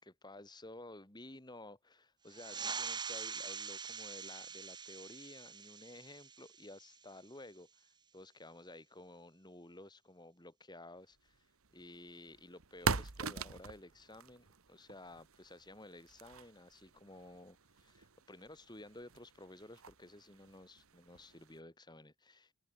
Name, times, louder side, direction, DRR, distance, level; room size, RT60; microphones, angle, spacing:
voice 1, 0.0-11.5 11.7-22.5, left 1 dB, 20° left, 2.9 m, -54 dB
sound 1, 2.3-7.4, right 5 dB, 20° right, 2.6 m, -44 dB
sound 2, 11.3-21.6, right 5 dB, 70° right, 1.5 m, -44 dB
head